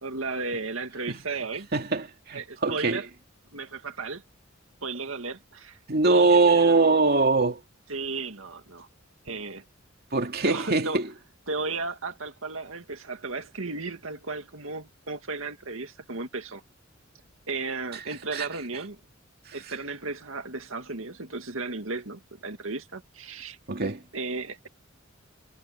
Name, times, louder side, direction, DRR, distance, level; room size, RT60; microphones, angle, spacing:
voice 1, 0.0-1.7 2.3-3.1 3.5-4.2 4.8-5.8 6.0-7.0 7.9-8.9 9.2-9.6 10.4-11.0 11.5-16.6 17.5-19.0 19.5-23.6 24.1-24.7, right 3 dB, 85° right, 2.2 m, -34 dB
voice 2, 1.7-3.0 5.9-7.6 10.1-11.1 18.3-18.5 19.5-19.6 23.7-24.0, right 3 dB, 50° right, 2.4 m, -22 dB
head